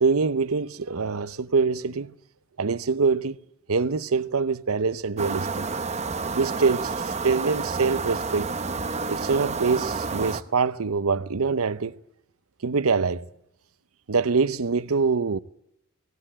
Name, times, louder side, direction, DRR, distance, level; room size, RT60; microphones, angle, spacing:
voice 1, 0.0-2.1 2.6-3.4 3.7-5.6 6.3-8.5 9.1-12.0 12.6-13.2 14.1-15.4, right 4 dB, 85° right, 0.8 m, -24 dB
sound 1, 5.2-10.4, right 4 dB, 30° right, 0.8 m, -30 dB
18.0 x 18.0 x 8.8 m
head